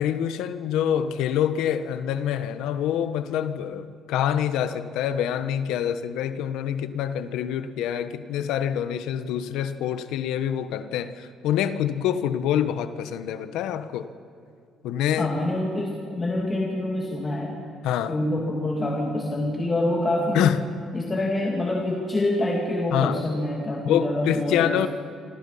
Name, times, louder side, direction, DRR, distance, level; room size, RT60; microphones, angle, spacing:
voice 1, 0.0-14.1 14.8-15.3 17.8-18.2 20.3-20.6 22.9-23.2 23.8-24.9, left 9 dB, 85° left, 11 dB, 1.2 m, -26 dB
voice 2, 15.2-17.6 18.1-20.5 20.9-24.9, left 1 dB, 20° left, -1 dB, 2.4 m, -26 dB
27.5 x 26.0 x 5.7 m, 2.4 s
cardioid pair, 155°, 0 cm